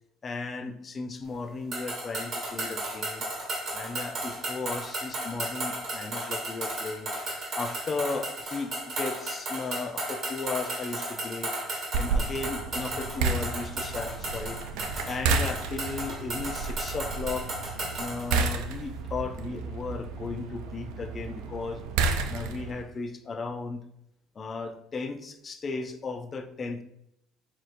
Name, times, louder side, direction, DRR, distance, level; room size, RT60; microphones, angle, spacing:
voice 1, 0.2-3.2 3.7-7.1 7.6-11.5 11.9-14.6 15.0-17.5 18.0-21.8 22.3-23.8 24.4-26.8, left 4 dB, 35° left, 7 dB, 0.6 m, -35 dB
sound 1, 1.7-18.5, right 2 dB, 45° right, 1.5 m, -35 dB
sound 2, 11.9-22.8, right 4 dB, 80° right, 0.5 m, -32 dB
6.3 x 2.9 x 2.6 m, 0.78 s
supercardioid pair, 85°, 0 cm